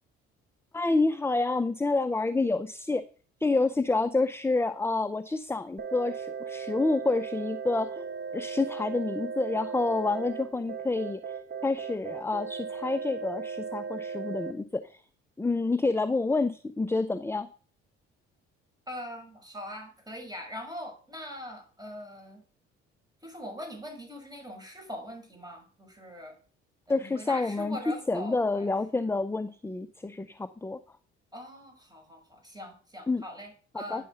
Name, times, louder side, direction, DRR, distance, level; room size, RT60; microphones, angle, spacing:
voice 1, 0.7-3.0 3.4-8.0 8.3-11.2 11.6-15.0 15.4-17.5 26.9-27.8 28.1-30.8 33.1-33.2 33.7-34.0, left 3 dB, 10° left, 14 dB, 0.6 m, -28 dB
sound 1, 5.8-14.5, right 6 dB, 30° right, 1.9 m, -37 dB
voice 2, 18.9-22.4 23.2-26.3 26.9-28.7 29.0-29.2 31.3-34.1, equal, 10° right, 4 dB, 6.0 m, -42 dB
10.0 x 6.7 x 6.8 m, 0.40 s
hypercardioid pair, 55°, 32 cm